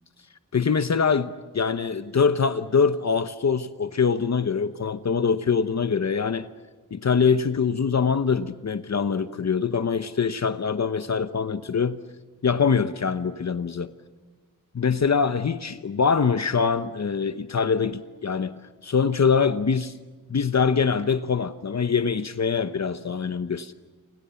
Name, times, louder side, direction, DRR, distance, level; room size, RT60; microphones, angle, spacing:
voice 1, 0.5-6.5 6.9-12.0 12.4-13.9 14.7-20.0 20.3-23.7, left 6 dB, 50° left, 11 dB, 1.0 m, -24 dB
30.0 x 27.5 x 7.1 m, 1.3 s
wide cardioid pair, 110°, 34 cm